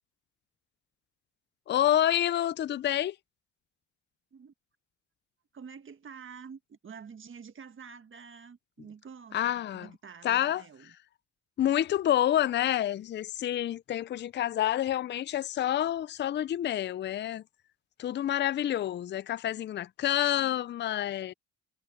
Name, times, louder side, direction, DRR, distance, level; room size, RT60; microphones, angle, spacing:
voice 1, 1.7-3.2 9.3-9.9 10.2-10.6 11.6-17.4 18.0-21.3, left 12 dB, 35° left, 0.4 m, -28 dB
voice 2, 5.5-10.9, right 6 dB, 40° right, 1.6 m, -48 dB
cardioid pair, 90°, 30 cm